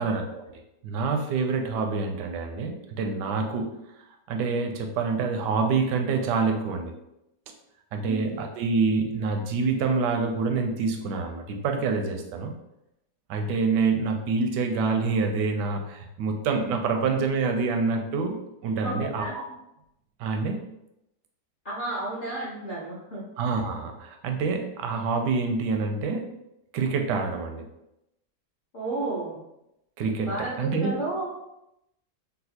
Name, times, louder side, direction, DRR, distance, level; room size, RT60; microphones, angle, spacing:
voice 1, 0.0-6.9 7.9-12.5 13.3-19.4 20.2-20.7 23.4-26.3 26.7-27.6 30.0-31.0, right 4 dB, 80° right, 4 dB, 1.2 m, -27 dB
voice 2, 8.0-8.4 16.9-17.0 18.8-19.4 21.6-23.3 28.7-29.4 30.2-31.2, right 2 dB, 60° left, -6 dB, 0.5 m, -32 dB
4.0 x 2.3 x 2.7 m, 0.85 s
omnidirectional pair, 1.8 m